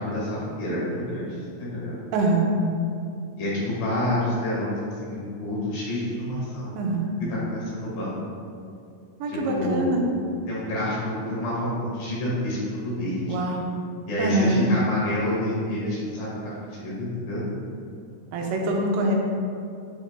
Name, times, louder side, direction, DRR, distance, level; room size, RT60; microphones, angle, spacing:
voice 1, 0.0-2.0 3.4-6.8 7.3-8.1 9.3-9.9 10.5-13.4 14.1-17.4, left 1 dB, 65° left, -7 dB, 3.0 m, -28 dB
voice 2, 2.1-2.6 6.8-7.1 9.2-10.0 13.3-13.7 14.2-14.7 18.3-19.1, right 2 dB, 85° right, 0 dB, 3.0 m, -24 dB
9.0 x 6.1 x 2.2 m, 2.4 s
omnidirectional pair, 4.9 m